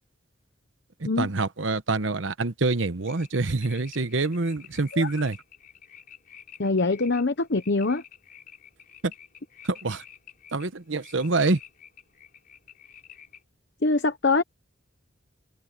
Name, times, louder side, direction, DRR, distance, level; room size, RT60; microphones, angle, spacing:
voice 1, 1.0-5.4 9.0-9.1 9.6-10.0 10.5-11.6, right 3 dB, 85° right, 1.1 m, -26 dB
sound 1, 3.1-13.4, left 8 dB, 45° left, 5.0 m, -50 dB
voice 2, 6.6-8.0 13.8-14.4, left 3 dB, 65° left, 1.0 m, -23 dB
head